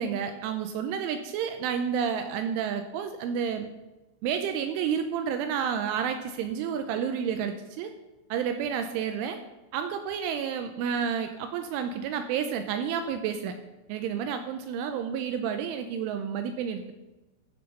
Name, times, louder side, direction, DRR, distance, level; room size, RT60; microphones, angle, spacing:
voice 1, 0.0-3.7 4.2-7.9 8.3-9.4 9.7-13.5 13.9-16.9, right 7 dB, 80° right, 7 dB, 2.9 m, -30 dB
13.5 x 6.8 x 5.5 m, 1.0 s
omnidirectional pair, 6.0 m